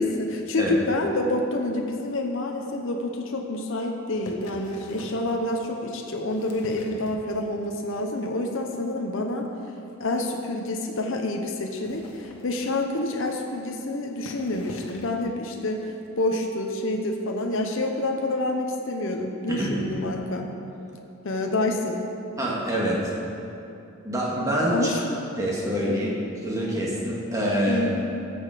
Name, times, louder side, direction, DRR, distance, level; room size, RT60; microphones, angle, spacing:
voice 1, 0.0-9.5 10.0-20.5 21.2-22.0 24.7-25.0 25.9-26.1 27.7-28.1, left 2 dB, 60° left, 2 dB, 0.8 m, -28 dB
sound 1, 4.1-5.3 6.1-7.7 8.0-8.5 8.7-8.9 9.2-9.3 9.5-9.6 9.9-10.0 10.6-10.7 11.6-13.0 13.7-13.8 14.1-15.2 16.0-16.1, left 2 dB, 85° left, 1.3 m, -44 dB
voice 2, 22.4-23.1 24.0-24.9 25.4-26.1 26.4-27.9, equal, 15° right, -4 dB, 1.8 m, -26 dB
14.0 x 7.1 x 5.0 m, 2.8 s
head